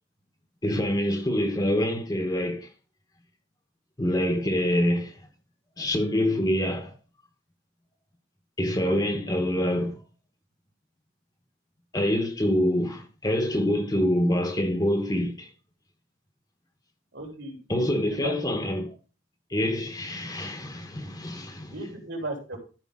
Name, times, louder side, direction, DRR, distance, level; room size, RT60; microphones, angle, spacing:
voice 1, 0.6-2.7 4.0-5.2 5.8-6.9 8.6-10.0 11.9-15.5 17.7-18.9 19.5-21.7, equal, 20° left, 1.0 m, -26 dB
voice 2, 17.1-18.3 21.7-22.6, right 2 dB, 75° right, 3.6 m, -36 dB
13.5 x 5.1 x 3.7 m
head